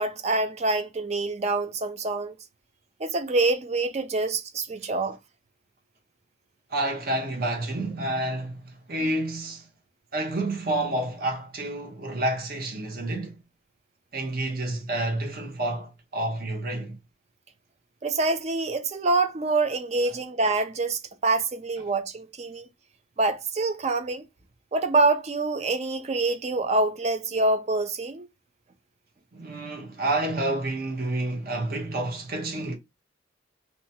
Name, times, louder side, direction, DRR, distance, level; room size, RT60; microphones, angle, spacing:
voice 1, 0.0-2.4 3.0-5.2 18.0-22.7 23.2-24.3 24.7-28.3, right 3 dB, 35° right, 0.4 m, -26 dB
voice 2, 6.7-9.7 10.1-13.4 14.1-17.0 29.3-32.8, right 1 dB, 50° right, 0.9 m, -29 dB
2.9 x 2.2 x 2.7 m
head